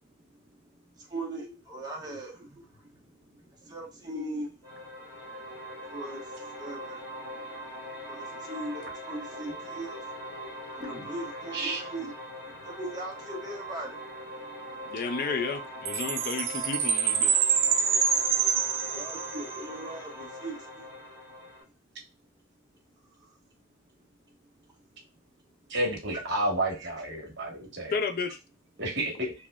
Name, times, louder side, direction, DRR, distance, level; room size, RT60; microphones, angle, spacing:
voice 1, 0.9-3.1 3.6-4.8 5.9-6.2 6.5-7.0 8.0-10.0 10.8-12.1 12.4-14.0 18.9-20.8 23.2-23.3 26.1-26.2 26.8-26.9, right 1 dB, 20° right, 1.3 m, -39 dB
sound 1, 4.6-21.6, equal, 10° left, 1.8 m, -41 dB
voice 2, 14.9-17.4 27.9-28.4, left 4 dB, 50° left, 0.4 m, -32 dB
Chime, 15.9-19.6, right 7 dB, 85° right, 0.6 m, -26 dB
voice 3, 25.7-27.9 28.8-29.3, right 1 dB, 60° right, 1.4 m, -30 dB
3.9 x 2.8 x 2.3 m
head